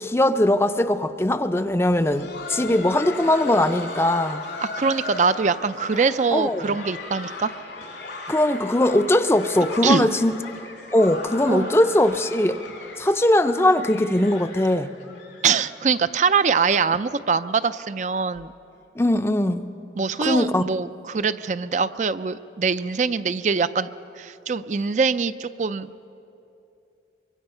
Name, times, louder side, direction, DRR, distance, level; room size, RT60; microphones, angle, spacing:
voice 1, 0.0-4.4 6.3-6.8 8.3-10.3 10.9-12.6 13.0-14.9 19.0-19.7 20.2-20.6, left 1 dB, 15° left, 10 dB, 0.5 m, -20 dB
Laughter, 1.8-17.4 17.7-17.8 18.3-18.5 19.0-19.2 20.3-20.4, left 3 dB, 80° left, 2.9 m, -37 dB
voice 2, 4.6-7.5 9.8-10.1 11.5-11.7 15.4-18.5 20.0-23.9 24.2-25.9, right 5 dB, 40° right, 13 dB, 0.4 m, -23 dB
24.0 x 23.5 x 5.6 m, 2.7 s
head